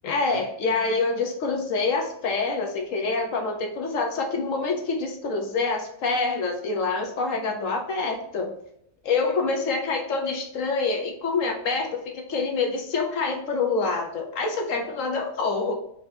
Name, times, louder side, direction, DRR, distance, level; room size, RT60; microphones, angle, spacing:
voice 1, 0.0-8.5 9.0-15.7, left 4 dB, 70° left, 2 dB, 1.1 m, -26 dB
5.1 x 3.4 x 2.7 m, 0.75 s
omnidirectional pair, 1.5 m